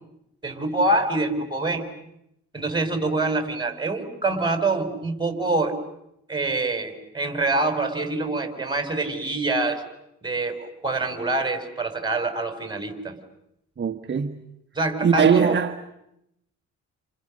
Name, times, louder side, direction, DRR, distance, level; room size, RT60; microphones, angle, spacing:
voice 1, 0.4-1.9 2.5-5.8 6.3-9.8 10.2-13.2 14.7-15.6, right 2 dB, 15° right, 5.7 m, -25 dB
voice 2, 13.8-14.4 15.0-15.8, right 7 dB, 35° right, 1.4 m, -20 dB
29.5 x 29.5 x 6.6 m
cardioid pair, 90°, 30 cm